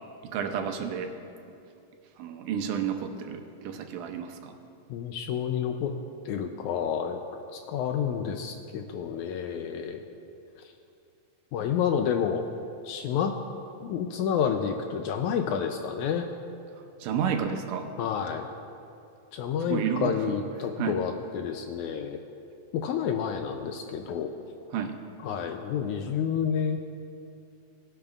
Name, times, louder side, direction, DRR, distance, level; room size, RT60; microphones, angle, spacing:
voice 1, 0.2-1.1 2.2-4.6 17.0-17.9 19.6-20.2 20.8-21.0 24.7-25.0, right 8 dB, 80° right, 5 dB, 2.3 m, -31 dB
voice 2, 4.9-5.9 6.3-7.2 7.5-10.1 11.5-12.5 12.8-13.3 13.8-16.3 18.0-18.5 19.3-22.2 22.7-24.3 25.2-26.8, left 7 dB, 80° left, 5 dB, 1.8 m, -29 dB
18.5 x 10.0 x 2.4 m, 2.5 s
omnidirectional pair, 3.8 m